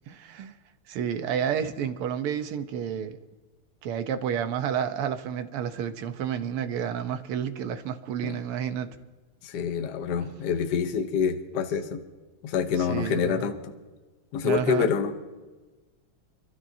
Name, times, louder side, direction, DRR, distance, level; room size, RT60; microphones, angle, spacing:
voice 1, 0.1-0.5 0.9-3.2 3.8-8.9 10.2-10.4 12.8-13.5 14.4-14.9, right 8 dB, 85° right, 1.8 m, -30 dB
voice 2, 9.4-12.0 12.4-13.7 14.3-15.1, left 7 dB, 60° left, 1.3 m, -27 dB
29.5 x 12.5 x 2.7 m
omnidirectional pair, 2.4 m